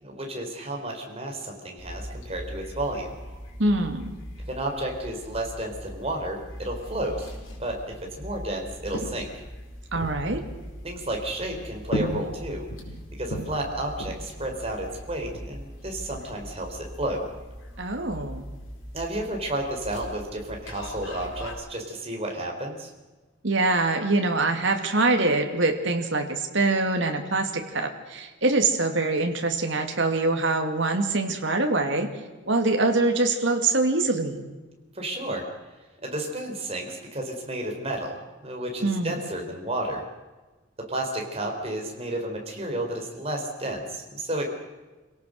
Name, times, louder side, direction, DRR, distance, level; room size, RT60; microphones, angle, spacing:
voice 1, 0.0-3.1 4.5-7.3 7.6-9.3 10.8-12.7 13.2-17.2 18.9-22.9 34.9-35.4 36.0-38.2 38.4-40.0 40.9-44.5, right 1 dB, 30° right, 1 dB, 4.2 m, -32 dB
sound 1, 1.8-21.5, equal, 90° left, 4.7 m, -38 dB
voice 2, 3.6-4.1 9.9-10.4 17.8-18.5 23.4-32.1 32.5-34.5 38.8-39.2, right 2 dB, 65° right, 4 dB, 2.4 m, -24 dB
26.5 x 17.5 x 6.5 m, 1.2 s
head